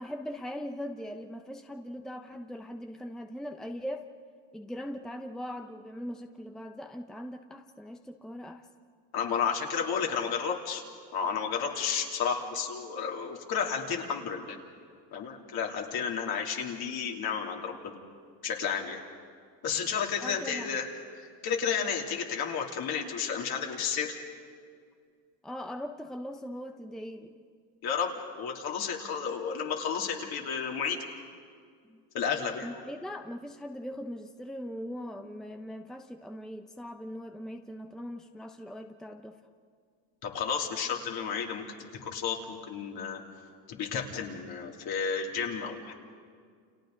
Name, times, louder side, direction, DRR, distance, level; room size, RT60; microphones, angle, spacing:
voice 1, 0.0-4.1 4.5-8.7 20.2-20.8 25.4-27.3 31.9-32.0 32.6-39.4, equal, ahead, 5 dB, 0.8 m, -40 dB
voice 2, 9.1-10.8 11.1-14.6 15.1-17.9 18.4-19.0 19.6-20.9 21.1-24.1 27.8-31.0 32.1-32.7 40.2-43.2 43.7-45.9, left 6 dB, 55° left, 0 dB, 3.2 m, -32 dB
30.0 x 28.5 x 3.9 m, 2.1 s
supercardioid pair, 105°, 45 cm